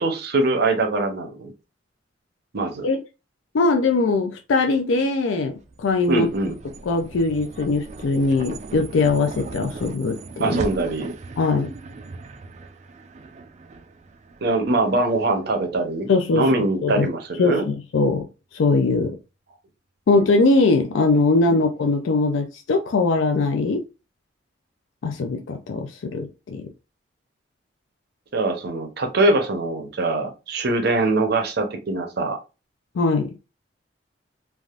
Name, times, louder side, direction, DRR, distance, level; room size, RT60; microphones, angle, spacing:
voice 1, 0.0-1.5 2.5-2.9 6.1-6.5 10.4-11.1 14.4-17.6 21.5-21.6 28.3-32.4, right 2 dB, 55° right, 0.7 m, -23 dB
voice 2, 3.5-6.3 6.9-10.2 10.4-10.6 11.4-11.7 16.1-16.5 16.8-17.1 17.4-18.3 18.5-19.1 20.1-23.8 25.0-26.6 33.0-33.3, left 3 dB, 85° left, 0.4 m, -21 dB
sound 1, 5.5-16.1, right 3 dB, 35° right, 0.3 m, -37 dB
3.3 x 2.4 x 2.4 m
head